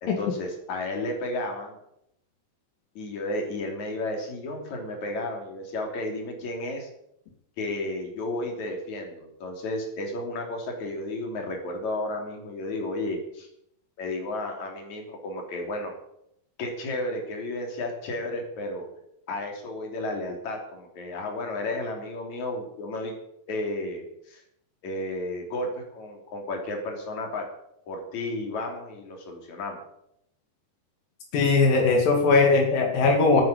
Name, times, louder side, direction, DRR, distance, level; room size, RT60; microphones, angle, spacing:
voice 1, 0.0-1.8 3.0-6.9 7.6-13.5 14.0-16.0 16.6-18.9 19.3-23.2 23.5-24.4 24.8-27.4 27.9-29.8, left 2 dB, 55° left, 3 dB, 4.4 m, -33 dB
voice 2, 31.3-33.4, left 3 dB, 80° left, 1 dB, 3.9 m, -20 dB
13.5 x 9.4 x 9.6 m, 0.78 s
omnidirectional pair, 3.9 m